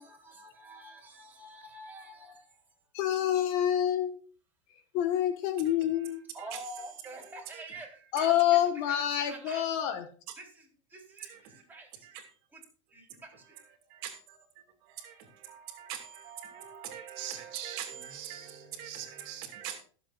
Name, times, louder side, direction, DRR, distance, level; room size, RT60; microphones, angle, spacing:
voice 1, 0.0-2.6 6.3-9.6 10.4-12.2 12.5-12.6 12.9-13.6, right 2 dB, 10° right, 3.8 m, -47 dB
voice 2, 2.9-4.2 4.9-6.3 8.1-10.1, left 11 dB, 50° left, 1.5 m, -27 dB
voice 3, 11.3-11.6 12.0-12.2 13.5-13.6 13.9-14.4 14.8-19.8, right 10 dB, 55° right, 2.6 m, -42 dB
21.5 x 7.5 x 2.5 m
supercardioid pair, 140°, 16 cm